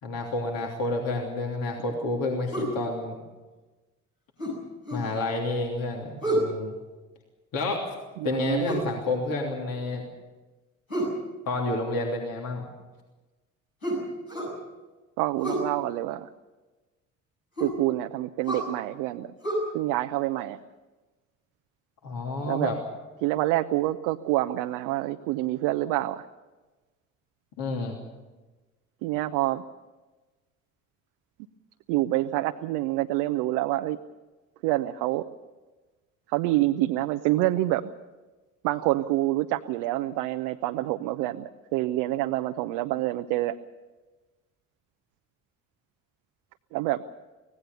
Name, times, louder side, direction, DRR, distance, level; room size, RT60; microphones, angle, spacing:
voice 1, 0.0-3.2 4.9-6.7 7.5-7.8 8.2-10.0 11.5-12.6 22.0-22.8 27.6-28.0, left 2 dB, 55° left, 0 dB, 3.3 m, -29 dB
sound 1, 2.5-2.8 4.4-5.1 6.2-6.5 8.6-8.9 10.9-11.2 13.8-14.6 15.4-15.7 17.6-17.8 18.5-18.7 19.4-19.5, right 1 dB, 85° left, 7.9 m, -29 dB
voice 2, 8.2-8.7 15.2-16.3 17.6-19.3 19.7-20.6 22.5-22.7 23.2-26.2 29.0-29.6 31.9-34.0 34.6-35.2 36.3-37.8 38.6-43.5 46.7-47.0, right 16 dB, 65° right, 7 dB, 0.8 m, -27 dB
24.5 x 18.5 x 6.9 m, 1.2 s
figure-of-eight pair, 45°, 40 cm